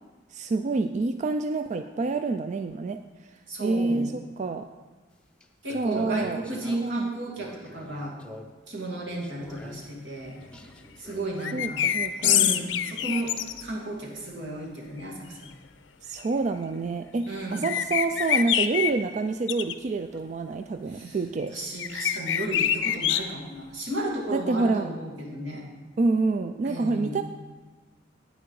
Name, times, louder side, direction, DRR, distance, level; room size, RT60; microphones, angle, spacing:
voice 1, 0.3-3.0 3.3-4.7 5.7-6.4 6.7-7.1 11.5-12.5 16.0-21.6 24.3-24.9 26.0-27.2, right 3 dB, 40° right, 8 dB, 0.3 m, -27 dB
voice 2, 3.5-4.1 5.6-8.2 8.7-10.4 11.0-11.9 12.2-13.3 13.6-15.5 17.3-17.6 20.9-21.2 21.5-25.6 26.6-27.2, right 1 dB, 80° right, -3 dB, 2.5 m, -34 dB
sound 1, 5.1-5.2 5.4-7.1 7.4-8.7 9.1-10.0 10.4-11.6 12.3-12.5 14.2-14.4 16.0-16.1 16.6-16.8 19.2-19.3 19.7-19.8 20.1-20.5 23.0-23.1, equal, 5° left, 0.6 m, -47 dB
sound 2, 11.4-13.6 17.5-18.9 19.5-19.7 21.8-23.2, left 10 dB, 80° left, 0.5 m, -25 dB
9.6 x 9.1 x 4.7 m, 1.3 s
head